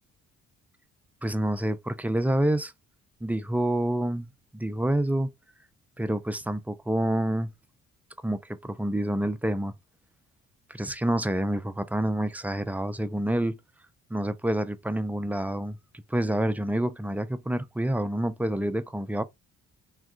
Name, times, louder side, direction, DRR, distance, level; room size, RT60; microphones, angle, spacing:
voice 1, 1.2-2.7 3.2-4.3 4.5-5.3 6.0-7.5 8.2-9.7 10.7-13.6 14.1-15.8 16.1-19.2, right 1 dB, 5° right, 0.3 m, -27 dB
3.7 x 2.3 x 2.3 m
cardioid pair, 90°, 30 cm